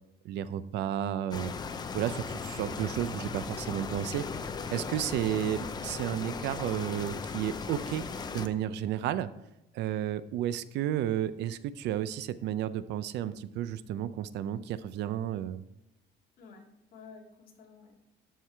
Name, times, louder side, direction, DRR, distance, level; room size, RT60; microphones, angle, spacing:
voice 1, 0.2-1.5 1.9-4.2 4.7-8.1 8.3-9.3 9.7-15.6, right 11 dB, 65° right, 14 dB, 0.5 m, -32 dB
sound 1, 1.3-8.5, left 5 dB, 20° left, 0.5 m, -37 dB
voice 2, 16.4-18.0, left 5 dB, 50° left, 0 dB, 2.1 m, -52 dB
13.0 x 4.7 x 3.4 m, 0.88 s
cardioid pair, 160°, 19 cm